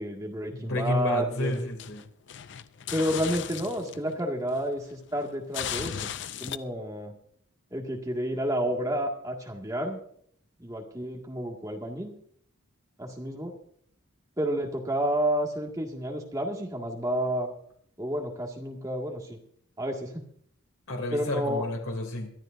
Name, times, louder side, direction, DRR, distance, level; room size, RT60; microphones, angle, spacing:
voice 1, 0.0-1.6 2.9-6.1 6.4-7.1 7.7-10.0 10.6-12.1 13.0-13.5 14.4-17.5 18.0-19.4 19.8-20.2 21.1-21.6, equal, 15° right, 0 dB, 2.0 m, -30 dB
voice 2, 0.5-2.0 20.9-22.3, left 1 dB, 80° left, 2 dB, 2.9 m, -30 dB
sound 1, 1.1-4.1 4.5-6.6, left 9 dB, 55° left, 0.5 m, -37 dB
23.0 x 12.5 x 2.6 m, 0.64 s
head